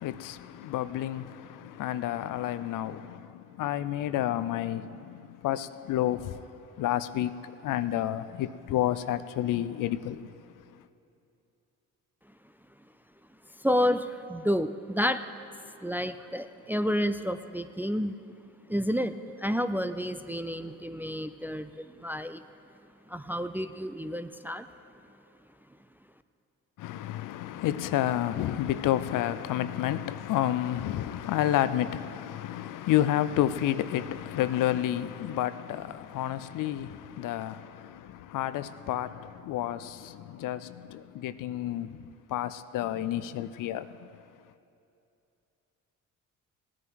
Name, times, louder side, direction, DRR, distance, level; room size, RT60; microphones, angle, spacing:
voice 1, 0.0-6.5 6.8-10.3 26.8-44.1, left 12 dB, 65° left, 0.5 m, -30 dB
voice 2, 13.6-15.3 15.8-18.1 18.7-22.4 23.1-24.7, equal, 5° right, 0.4 m, -30 dB
17.0 x 9.8 x 4.7 m
supercardioid pair, 60°, 34 cm